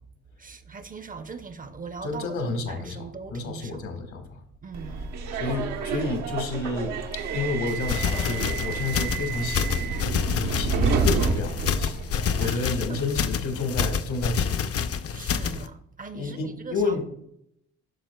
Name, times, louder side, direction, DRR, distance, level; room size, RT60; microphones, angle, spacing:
voice 1, 0.4-3.9 4.6-5.1 12.4-13.0 15.1-17.0, right 4 dB, 30° right, 0.5 m, -40 dB
voice 2, 2.0-4.4 5.3-6.9 7.3-9.9 10.3-11.9 12.4-14.7 16.1-17.0, left 3 dB, 75° left, 1.5 m, -30 dB
Subway metro underground, 4.7-12.4, right 4 dB, 90° right, 0.8 m, -29 dB
sound 1, 7.7-15.7, left 6 dB, 50° left, 0.5 m, -28 dB
12.0 x 4.4 x 2.2 m
cardioid pair, 90°, 30 cm